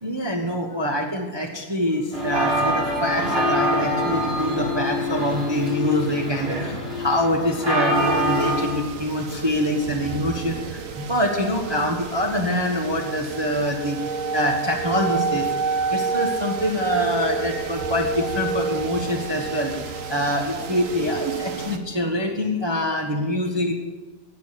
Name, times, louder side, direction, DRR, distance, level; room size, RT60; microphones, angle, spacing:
voice 1, 0.0-14.0 14.3-15.5 15.9-23.7, left 1 dB, 15° right, 1 dB, 1.2 m, -25 dB
sound 1, 2.1-8.7, left 1 dB, 35° right, 3.8 m, -24 dB
sound 2, 7.9-21.8, right 5 dB, 55° right, 1.3 m, -29 dB
16.5 x 6.6 x 8.6 m, 1.2 s
omnidirectional pair, 1.8 m